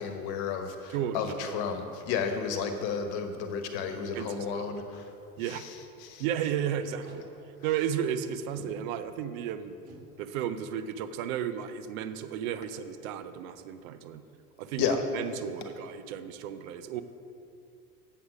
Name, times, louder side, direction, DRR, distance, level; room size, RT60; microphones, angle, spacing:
voice 1, 0.0-5.1 6.0-6.2 14.8-15.0, left 6 dB, 55° left, 6 dB, 1.1 m, -32 dB
voice 2, 0.9-1.6 4.1-4.8 5.4-5.6 6.2-7.2 7.6-9.8 10.2-14.2 14.6-17.0, right 9 dB, 60° right, 11 dB, 0.7 m, -34 dB
Packing tape duct tape, 4.7-4.8 5.1-5.3 5.6-5.8 6.8-7.2 8.2-8.7 9.6-10.0 11.5-11.7 12.1-12.2 12.5-12.9, right 2 dB, 80° right, 2.0 m, -52 dB
7.9 x 7.3 x 4.8 m, 2.5 s
hypercardioid pair, 85°, 46 cm